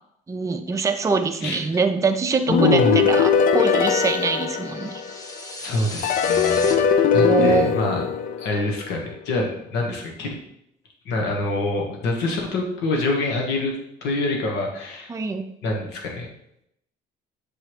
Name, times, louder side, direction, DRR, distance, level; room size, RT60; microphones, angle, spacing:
voice 1, 0.3-5.0 7.1-7.7 15.1-15.5, right 5 dB, 20° right, 5 dB, 0.5 m, -23 dB
voice 2, 2.5-3.0 5.6-6.8 7.1-8.0 8.4-10.4 11.0-13.7 14.0-15.1 15.6-16.3, left 2 dB, 90° left, 1 dB, 1.2 m, -25 dB
sound 1, 2.5-5.4 6.0-8.9, left 7 dB, 55° left, 0.4 m, -20 dB
sound 2, 4.6-6.7, left 1 dB, 20° left, 0.9 m, -36 dB
6.8 x 3.0 x 4.8 m, 0.76 s
cardioid pair, 110°, 17 cm